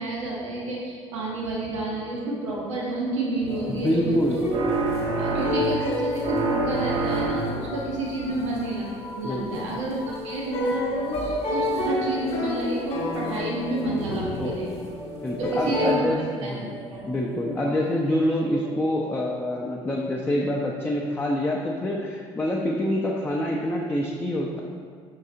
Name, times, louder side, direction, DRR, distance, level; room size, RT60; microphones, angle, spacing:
voice 1, 0.0-4.4 5.2-8.9 9.1-14.8 15.4-16.5 16.9-17.1, right 2 dB, 75° right, -4 dB, 0.9 m, -30 dB
sound 1, 1.9-18.7, left 1 dB, 85° left, 0.6 m, -42 dB
sound 2, 3.5-15.9, left 1 dB, 40° left, 1.0 m, -31 dB
voice 2, 3.7-4.5 9.2-9.7 14.4-14.5 15.2-16.8 17.1-24.6, left 1 dB, 10° left, -2 dB, 0.4 m, -26 dB
sound 3, 4.5-5.9 6.2-7.7, right 3 dB, 40° right, 0.6 m, -26 dB
5.4 x 3.7 x 2.6 m, 2.1 s
figure-of-eight pair, 55°, 16 cm